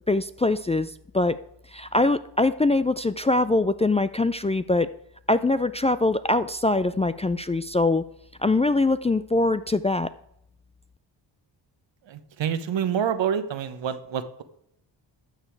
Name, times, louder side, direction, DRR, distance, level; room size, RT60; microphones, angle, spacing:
voice 1, 0.1-1.4 1.7-4.9 5.3-8.0 8.4-10.1, left 2 dB, 15° left, 12 dB, 0.3 m, -23 dB
voice 2, 12.1-14.4, right 8 dB, 70° right, 11 dB, 1.2 m, -27 dB
12.5 x 6.9 x 4.6 m, 0.75 s
cardioid pair, 70°, 45 cm